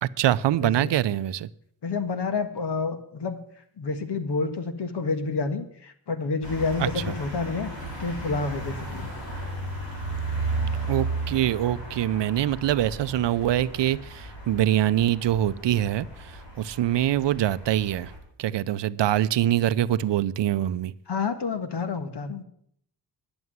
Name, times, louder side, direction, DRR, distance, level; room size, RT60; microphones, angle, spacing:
voice 1, 0.0-1.5 6.8-6.9 10.8-18.1 18.4-20.9, right 12 dB, 70° right, 16 dB, 0.6 m, -24 dB
voice 2, 0.5-0.9 1.8-3.4 3.8-7.7 8.0-9.1 21.1-22.4, left 4 dB, 65° left, 9 dB, 1.7 m, -29 dB
sound 1, 6.4-18.2, right 2 dB, 90° left, 3.9 m, -34 dB
11.0 x 7.1 x 9.2 m, 0.68 s
cardioid pair, 65°, 44 cm